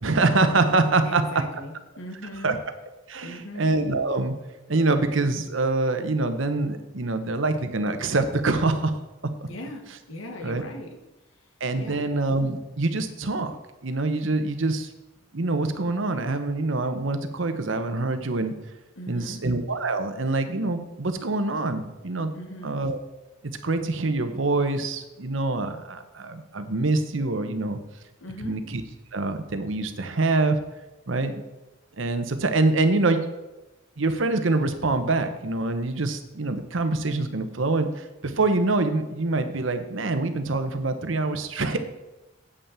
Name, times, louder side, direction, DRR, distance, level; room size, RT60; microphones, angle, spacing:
voice 1, 0.0-1.5 2.4-2.6 3.1-4.4 4.7-9.5 10.4-10.6 11.6-13.6 13.8-14.9 15.3-18.6 19.1-22.3 22.6-23.0 23.4-27.8 28.4-28.8 29.1-30.6 31.1-31.4 32.0-33.2 34.0-41.8, right 2 dB, 70° right, 9 dB, 0.9 m, -25 dB
voice 2, 1.0-2.6 3.2-3.6 9.5-10.9 11.7-12.0 19.0-19.4 22.3-22.7 28.2-28.6, left 1 dB, 85° left, 3 dB, 1.7 m, -39 dB
8.3 x 5.6 x 7.4 m, 1.0 s
head